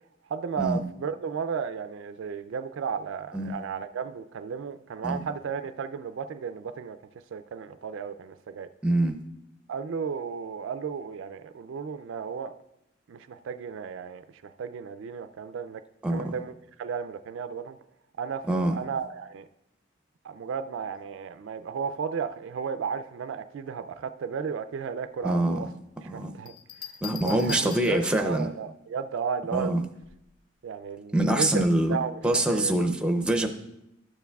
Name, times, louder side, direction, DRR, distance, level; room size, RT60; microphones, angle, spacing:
voice 1, 0.3-7.0 7.3-8.7 9.7-12.5 13.1-15.8 16.1-17.8 18.2-18.5 18.7-19.5 20.2-25.7 26.0-26.5 27.2-29.8 30.6-32.8, right 6 dB, 65° right, 11 dB, 0.3 m, -34 dB
voice 2, 8.8-9.2 16.0-16.4 18.5-18.7 25.2-25.7 26.0-26.3 27.0-28.5 29.5-29.8 31.1-32.0 32.2-33.5, right 1 dB, 5° right, 4 dB, 0.5 m, -25 dB
Bell, 26.5-28.4 30.0-30.4, left 8 dB, 85° left, 0.7 m, -41 dB
12.5 x 6.9 x 2.3 m, 0.83 s
head